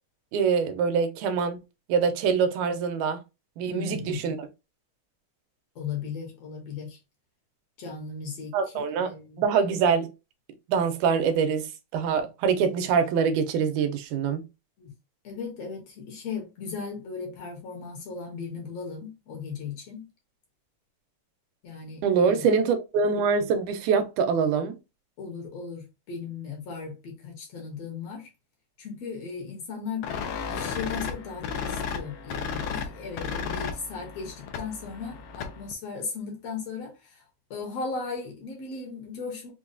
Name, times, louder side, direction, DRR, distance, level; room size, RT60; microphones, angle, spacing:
voice 1, 0.3-1.6 1.9-3.2 3.6-4.4 8.5-9.1 9.4-10.1 10.7-14.4 22.0-24.7, right 6 dB, 85° right, 2.1 m, -24 dB
voice 2, 3.7-4.3 5.8-7.0 7.8-8.5 9.0-9.4 14.8-14.9 15.2-20.0 21.6-22.5 25.2-28.3 28.8-37.2 37.5-39.5, left 5 dB, 65° left, 1.8 m, -37 dB
sound 1, 30.0-35.7, left 6 dB, 85° left, 1.3 m, -34 dB
5.3 x 2.3 x 2.4 m
omnidirectional pair, 3.5 m